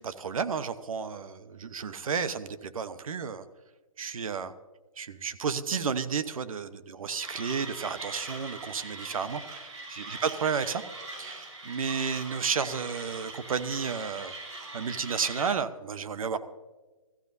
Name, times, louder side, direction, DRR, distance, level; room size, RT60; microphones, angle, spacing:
voice 1, 0.0-3.4 4.0-4.5 5.0-10.8 11.2-14.3 14.7-16.4, right 6 dB, 75° right, 12 dB, 1.0 m, -32 dB
Mechanisms, 7.2-15.5, right 2 dB, 55° right, 5.2 m, -41 dB
20.5 x 14.5 x 2.7 m, 1.3 s
hypercardioid pair, 165°, 18 cm